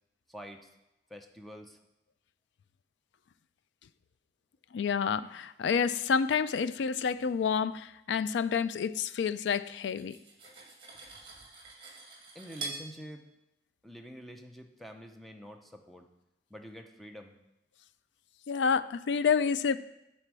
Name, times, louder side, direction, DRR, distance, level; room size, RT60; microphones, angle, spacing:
voice 1, 0.3-0.7 1.1-1.8 12.3-13.3 13.8-16.1 16.5-17.4, equal, ahead, 4 dB, 0.6 m, -47 dB
voice 2, 4.7-10.2 18.5-19.8, left 6 dB, 80° left, 15 dB, 0.4 m, -29 dB
Cutlery silverware, 9.7-12.9, right 3 dB, 30° right, 1.6 m, -44 dB
9.8 x 4.2 x 6.1 m, 0.92 s
head